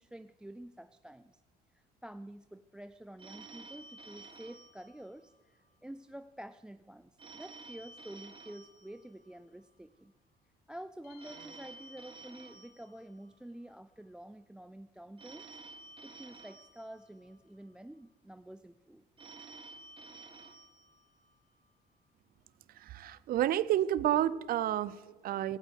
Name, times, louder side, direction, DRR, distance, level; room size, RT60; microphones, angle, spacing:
voice 1, 0.0-1.4 1.7-10.1 10.7-15.5 16.0-19.1, right 1 dB, 5° right, 13 dB, 0.4 m, -49 dB
Telephone, 3.2-5.7 7.2-9.7 11.2-13.7 15.2-17.7 19.2-21.7, right 3 dB, 30° right, 1.5 m, -52 dB
sound 1, 11.0-12.9, left 5 dB, 70° left, 4.0 m, -60 dB
voice 2, 22.8-25.6, right 12 dB, 60° right, 17 dB, 0.6 m, -30 dB
17.5 x 9.0 x 8.2 m, 1.3 s
cardioid pair, 110°, 17 cm